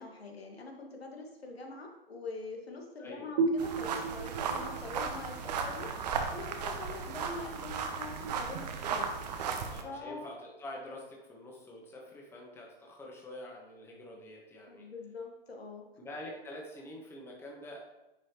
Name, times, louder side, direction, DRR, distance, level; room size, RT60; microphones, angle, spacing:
voice 1, 0.0-9.1 9.4-9.5 9.8-10.3 14.7-15.9, left 3 dB, 85° left, 1 dB, 1.5 m, -44 dB
voice 2, 3.0-3.3 9.7-14.8 16.0-17.8, left 1 dB, 10° left, -1 dB, 1.2 m, -46 dB
sound 1, 3.4-6.8, right 4 dB, 25° right, 0.4 m, -35 dB
sound 2, 3.6-9.8, right 5 dB, 45° right, 0.9 m, -36 dB
9.7 x 4.8 x 2.9 m, 0.96 s
figure-of-eight pair, 125°, 30 cm